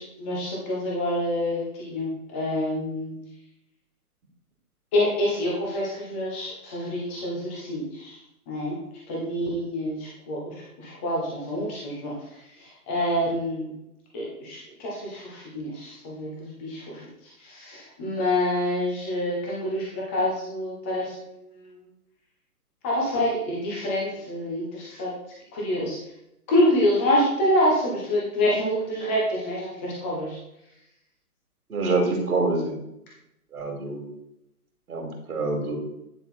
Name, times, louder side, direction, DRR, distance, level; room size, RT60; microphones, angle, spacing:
voice 1, 0.0-3.2 4.9-8.1 8.5-8.7 9.1-12.1 12.9-13.7 14.1-17.0 17.4-21.1 22.8-25.1 25.5-26.0 26.5-30.4, left 1 dB, 10° left, -4 dB, 0.6 m, -26 dB
voice 2, 31.7-32.8 33.5-34.1 34.9-35.8, right 3 dB, 65° right, 0 dB, 2.8 m, -26 dB
9.9 x 3.7 x 4.1 m, 0.82 s
figure-of-eight pair, 140°, 46 cm